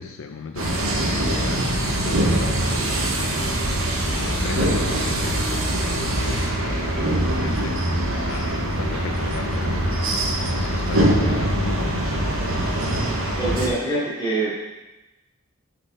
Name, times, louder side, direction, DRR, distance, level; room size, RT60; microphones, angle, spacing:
voice 1, 0.0-3.2 3.7-12.8, left 4 dB, 70° left, 5 dB, 0.4 m, -35 dB
sound 1, 0.6-13.7, right 1 dB, 75° right, 1.1 m, -23 dB
voice 2, 13.4-14.5, right 2 dB, 20° left, -8 dB, 2.5 m, -24 dB
8.1 x 4.8 x 4.5 m, 1.0 s
head